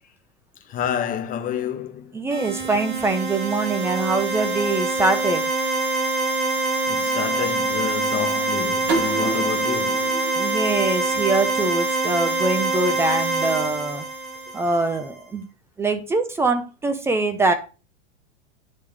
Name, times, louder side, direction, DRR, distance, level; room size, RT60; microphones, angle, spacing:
voice 1, 0.7-2.1 6.9-10.1, left 9 dB, 25° left, 0.8 m, -29 dB
voice 2, 2.1-5.5 10.4-14.1 14.5-15.5 15.8-17.5, right 3 dB, 10° right, 0.4 m, -23 dB
sound 1, 2.3-15.0, right 3 dB, 50° right, 3.1 m, -25 dB
sound 2, 8.9-11.7, right 4 dB, 80° right, 2.4 m, -30 dB
10.5 x 3.5 x 3.2 m
supercardioid pair, 145°, 35 cm